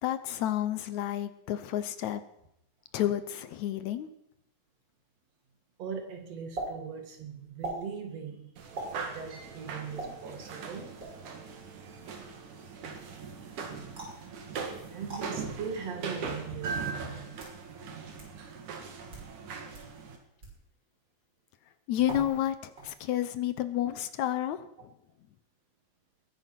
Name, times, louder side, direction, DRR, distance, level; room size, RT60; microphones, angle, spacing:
voice 1, 0.0-2.2 2.9-4.1 21.9-24.9, left 12 dB, 75° left, 12 dB, 2.1 m, -30 dB
voice 2, 5.8-8.5 9.1-11.0 14.9-17.4 18.3-18.4, right 6 dB, 60° right, 5 dB, 3.0 m, -40 dB
sound 1, 6.6-6.7 7.6-7.8 8.8-9.0 10.0-10.1 11.0-11.3 14.0-14.2 15.1-15.2 16.2-16.3 17.1-17.6 18.2-18.3 19.0-19.3 19.7-19.9 20.4-20.6 22.1-22.5 22.8-23.2, right 2 dB, 35° right, 6.2 m, -39 dB
sound 2, 8.6-20.2, right 5 dB, 80° right, 3.5 m, -40 dB
21.0 x 9.5 x 6.1 m, 0.76 s
omnidirectional pair, 3.5 m